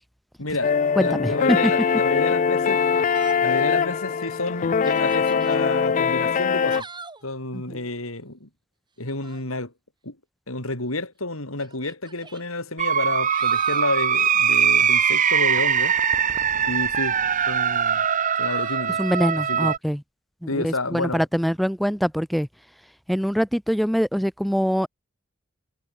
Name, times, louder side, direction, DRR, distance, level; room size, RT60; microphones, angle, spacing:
voice 1, 0.4-0.7 1.0-3.1 3.4-6.9 7.2-8.5 9.0-9.7 10.0-10.2 10.5-16.0 16.7-17.2 17.5-18.1 18.4-19.0 19.5-19.7 20.5-21.2, left 2 dB, 90° left, 6.7 m, -30 dB
sound 1, 0.6-6.8, left 6 dB, 35° left, 0.4 m, -22 dB
voice 2, 1.0-1.6 7.5-7.8 19.0-20.0 20.4-22.5 23.1-24.9, equal, ahead, 1.1 m, -24 dB
Yell, 3.0-3.6 4.1-4.2 4.7-5.6 6.5-7.3 9.0-9.5 10.6-10.7 11.6-12.4 13.0-13.9 16.6-17.2 18.4-18.9, right 4 dB, 20° right, 7.7 m, -42 dB
sound 2, 12.8-19.8, right 7 dB, 40° right, 1.3 m, -21 dB
head